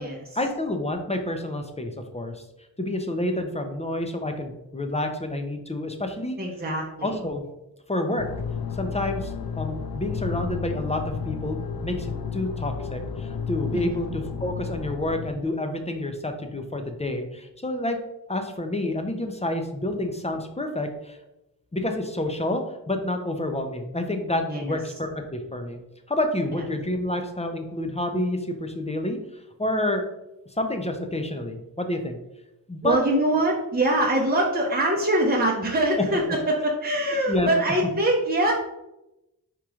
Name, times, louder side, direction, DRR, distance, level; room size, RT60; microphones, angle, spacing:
voice 1, 0.4-2.4 2.8-6.4 7.0-7.4 7.9-8.3 8.7-11.6 11.8-18.0 18.3-21.2 21.7-25.8 26.1-29.2 29.6-30.0 30.6-32.2 32.7-33.0 37.3-37.5, left 1 dB, 15° left, 5 dB, 0.6 m, -28 dB
voice 2, 6.4-7.2 13.7-14.0 24.5-24.8 32.8-38.5, right 1 dB, 25° right, -2 dB, 0.8 m, -23 dB
sound 1, 8.2-15.3, left 6 dB, 70° left, 0.5 m, -32 dB
4.7 x 3.0 x 3.6 m, 0.92 s
cardioid pair, 60°, 38 cm